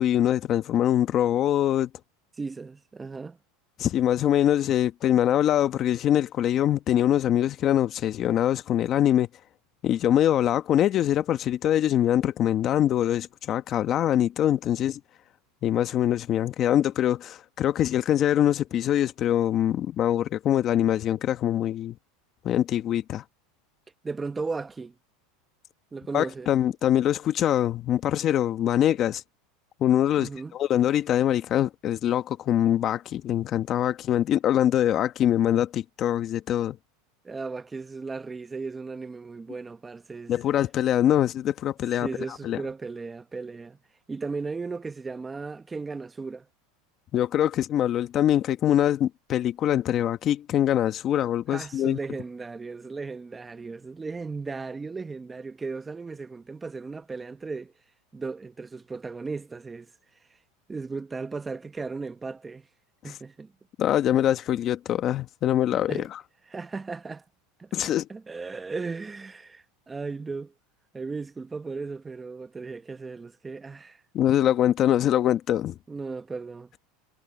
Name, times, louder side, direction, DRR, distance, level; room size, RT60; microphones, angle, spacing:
voice 1, 0.0-1.9 3.8-9.3 9.8-15.0 15.6-22.0 22.4-23.2 26.1-29.2 29.8-36.8 40.3-42.1 42.4-42.6 47.1-52.0 63.8-66.2 67.7-68.1 74.1-75.7, left 11 dB, 35° left, 1.1 m, -23 dB
voice 2, 2.4-3.4 24.0-24.9 25.9-26.5 30.2-30.5 37.2-40.3 42.0-43.8 44.1-46.5 51.5-57.7 58.1-59.9 60.7-62.7 63.0-63.5 65.9-66.1 66.5-67.2 67.6-67.7 68.1-70.5 70.9-74.0 75.9-76.7, right 4 dB, 15° right, 0.9 m, -36 dB
supercardioid pair, 145°, 0 cm